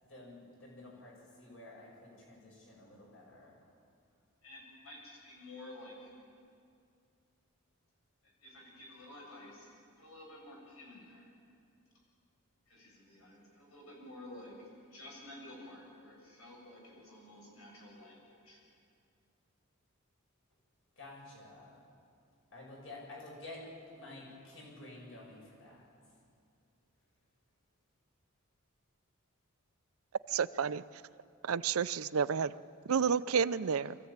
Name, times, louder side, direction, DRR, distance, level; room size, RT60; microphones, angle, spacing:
voice 1, 0.0-3.5 21.0-21.8 22.5-23.6 24.0-25.8, left 2 dB, 65° left, -2 dB, 7.5 m, -51 dB
voice 2, 4.4-6.1 8.4-9.7 10.0-11.3 12.7-18.6, left 1 dB, 85° left, -1 dB, 7.3 m, -51 dB
voice 3, 30.3-30.8 31.4-32.5 32.9-34.0, right 6 dB, 85° right, 16 dB, 0.5 m, -30 dB
24.5 x 15.0 x 8.9 m, 2.3 s
head